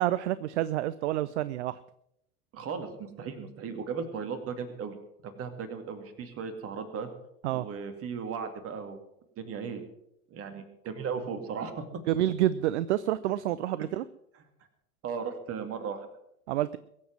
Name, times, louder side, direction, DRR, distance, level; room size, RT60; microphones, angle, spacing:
voice 1, 0.0-1.8 7.4-7.7 12.1-14.0 16.5-16.8, right 13 dB, 55° right, 17 dB, 0.5 m, -28 dB
voice 2, 2.5-4.9 5.2-7.1 7.5-9.0 9.4-9.8 10.3-11.9 14.3-14.4 15.0-16.1, right 6 dB, 30° right, 7 dB, 2.3 m, -36 dB
22.5 x 7.5 x 6.1 m, 0.79 s
figure-of-eight pair, 85°, 43 cm